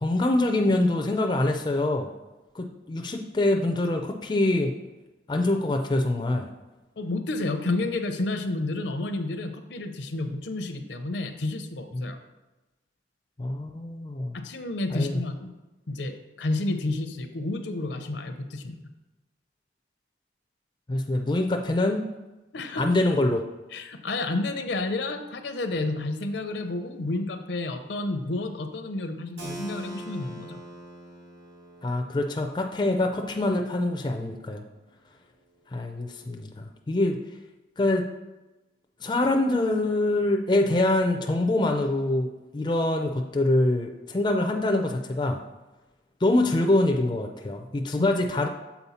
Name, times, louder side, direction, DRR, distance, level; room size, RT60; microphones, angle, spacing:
voice 1, 0.0-2.1 2.5-4.7 5.3-6.5 11.9-12.1 13.4-14.4 14.9-15.2 20.9-22.0 22.8-23.4 31.8-34.6 35.7-37.2 37.8-38.0 39.0-42.3 42.5-45.4 46.2-48.5, left 2 dB, 25° left, 3 dB, 0.4 m, -25 dB
voice 2, 7.0-12.2 14.3-15.5 15.9-18.8 22.5-22.9 23.7-30.6 48.0-48.1, left 2 dB, 70° left, 7 dB, 0.6 m, -30 dB
Keyboard (musical), 29.4-34.9, right 1 dB, 75° right, 1.3 m, -44 dB
7.0 x 4.3 x 4.2 m, 1.1 s
head